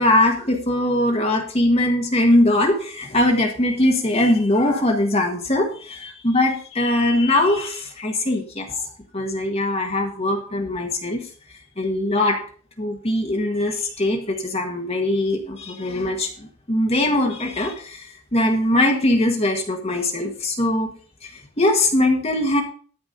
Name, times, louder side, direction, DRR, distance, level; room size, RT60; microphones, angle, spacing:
voice 1, 0.0-8.9 9.1-11.3 11.8-12.4 12.8-20.9 21.2-22.6, left 1 dB, 25° left, 2 dB, 1.6 m, -21 dB
13.5 x 4.7 x 6.7 m, 0.42 s
head